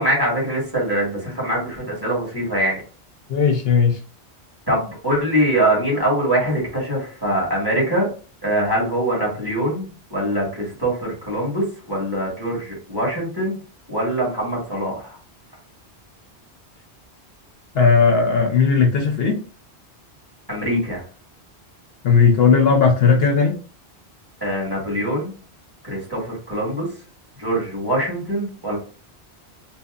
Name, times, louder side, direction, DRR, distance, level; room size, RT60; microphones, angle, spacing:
voice 1, 0.0-2.8 4.7-8.1 8.4-13.6 13.9-15.2 20.5-21.0 24.4-25.3 25.8-26.9 27.4-28.8, right 1 dB, 20° right, -4 dB, 1.4 m, -23 dB
voice 2, 3.3-4.0 17.7-19.4 22.0-23.6, left 5 dB, 65° left, 2 dB, 0.9 m, -16 dB
2.8 x 2.6 x 2.3 m, 0.38 s
omnidirectional pair, 1.1 m